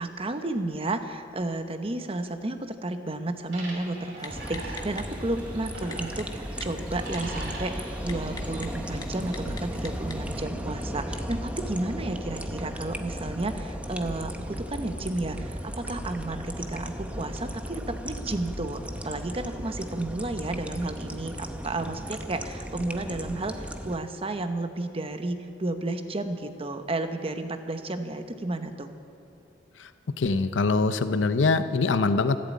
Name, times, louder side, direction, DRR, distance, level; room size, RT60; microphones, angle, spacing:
voice 1, 0.0-28.9, right 2 dB, 30° right, 8 dB, 0.9 m, -32 dB
sound 1, 3.5-9.6, right 2 dB, 75° right, 3.7 m, -43 dB
Typing, 4.2-10.4, left 3 dB, 20° left, 1.2 m, -46 dB
sound 2, 4.3-24.0, equal, 5° right, 0.8 m, -36 dB
voice 2, 30.2-32.4, left 3 dB, 80° left, 11 dB, 0.6 m, -23 dB
14.5 x 12.0 x 8.4 m, 2.7 s
head